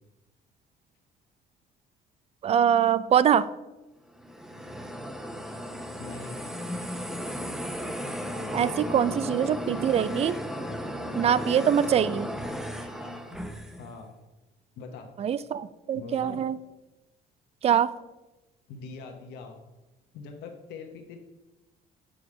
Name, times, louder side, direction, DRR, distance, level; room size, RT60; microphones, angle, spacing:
voice 1, 2.4-3.5 8.5-10.4 11.2-12.3 15.2-16.6 17.6-17.9, right 9 dB, 40° right, 17 dB, 0.4 m, -23 dB
sound 1, 4.1-13.9, equal, 5° right, 0.7 m, -35 dB
voice 2, 6.0-6.5 12.9-14.1 14.8-15.1 15.9-16.4 18.7-19.7 20.1-21.2, left 4 dB, 85° left, 4 dB, 1.0 m, -43 dB
7.4 x 5.0 x 4.8 m, 1.0 s
cardioid pair, 110°, 17 cm